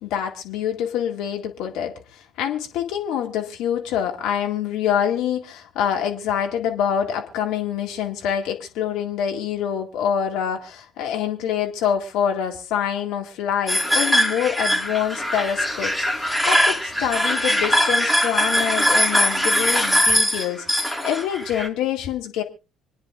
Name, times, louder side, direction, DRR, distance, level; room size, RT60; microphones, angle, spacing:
voice 1, 0.0-22.4, left 9 dB, 65° left, 2 dB, 2.1 m, -26 dB
sound 1, 13.7-21.7, equal, ahead, 1.9 m, -21 dB
26.5 x 9.6 x 2.5 m, 0.30 s
figure-of-eight pair, 50°, 0 cm